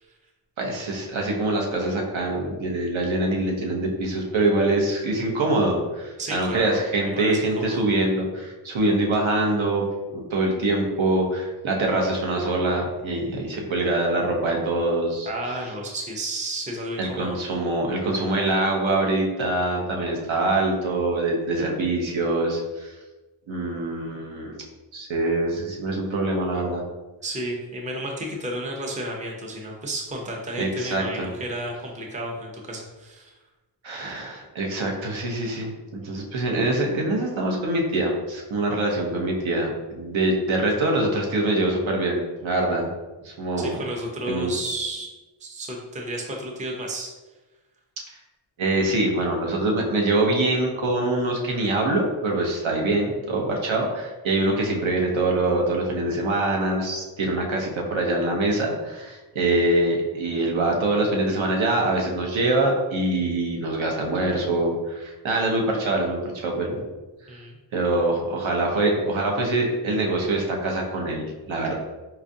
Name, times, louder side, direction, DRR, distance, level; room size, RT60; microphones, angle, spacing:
voice 1, 0.6-9.8 10.1-15.3 17.0-22.9 23.5-24.6 24.9-26.8 30.6-31.3 33.8-42.9 43.2-43.8 44.3-44.5 48.6-66.9 67.7-71.7, right 2 dB, 75° right, 0 dB, 0.8 m, -24 dB
voice 2, 6.2-6.8 7.0-7.8 15.3-17.3 27.2-33.3 43.6-45.1 45.4-47.1 67.3-67.6, right 1 dB, 15° right, 0 dB, 0.5 m, -32 dB
4.3 x 2.4 x 2.6 m, 1.1 s
wide cardioid pair, 110°, 47 cm